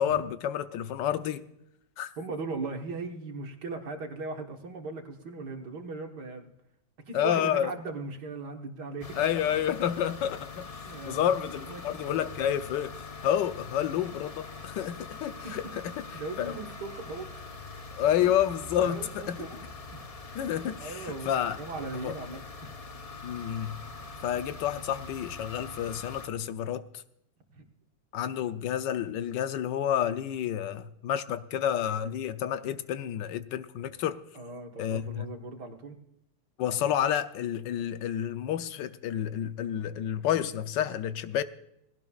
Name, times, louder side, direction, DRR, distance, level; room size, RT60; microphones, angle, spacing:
voice 1, 0.0-1.4 2.0-2.1 7.1-7.7 9.2-10.7 11.0-12.9 13.2-15.9 16.4-16.6 18.0-19.5 20.3-21.6 22.0-22.1 23.2-23.8 24.2-26.8 28.1-34.2 34.8-35.3 36.6-41.4, left 10 dB, 90° left, 1.4 m, -29 dB
voice 2, 2.2-6.5 7.1-9.1 10.9-11.3 11.7-11.8 12.1-12.3 15.4-15.5 16.1-17.3 18.8-20.1 20.8-22.7 27.5-27.6 34.3-36.0, right 3 dB, 70° right, 2.0 m, -38 dB
sound 1, 9.0-26.3, left 3 dB, 45° left, 0.4 m, -43 dB
19.0 x 16.5 x 2.4 m
omnidirectional pair, 1.9 m